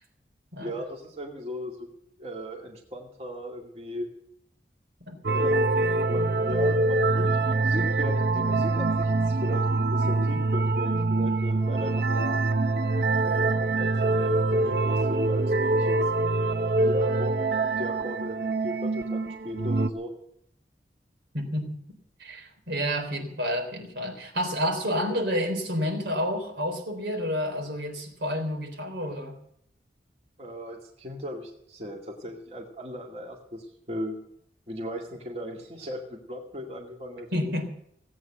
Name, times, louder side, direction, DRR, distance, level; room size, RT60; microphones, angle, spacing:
voice 1, 0.6-1.9 2.2-4.1 5.3-12.4 13.2-16.0 16.8-20.1 30.4-34.2 34.7-37.5, equal, 35° right, 0 dB, 2.3 m, -37 dB
sound 1, 5.2-19.9, right 2 dB, 60° right, 0.7 m, -24 dB
voice 2, 21.3-21.8 22.2-29.4 37.3-37.7, equal, 85° right, 3 dB, 3.7 m, -29 dB
17.5 x 8.8 x 7.8 m, 0.71 s
head